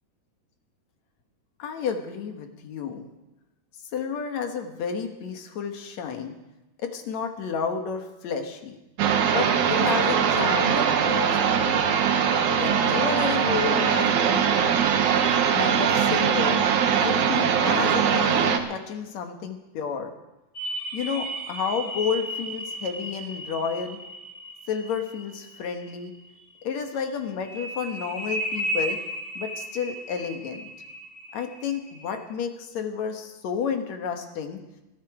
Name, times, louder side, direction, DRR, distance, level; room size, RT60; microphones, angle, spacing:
voice 1, 1.6-3.1 3.9-6.3 6.8-8.8 9.3-11.9 12.5-14.5 15.5-16.6 17.0-20.1 20.9-24.0 24.7-26.1 26.6-29.0 29.4-30.7 31.3-34.6, left 6 dB, 60° left, 5 dB, 2.4 m, -31 dB
sound 1, 9.0-18.6, right 7 dB, 70° right, 2.4 m, -22 dB
sound 2, 20.6-26.1 27.4-32.2, right 1 dB, 30° left, 5.1 m, -35 dB
20.5 x 12.5 x 4.9 m, 0.99 s
omnidirectional pair, 3.8 m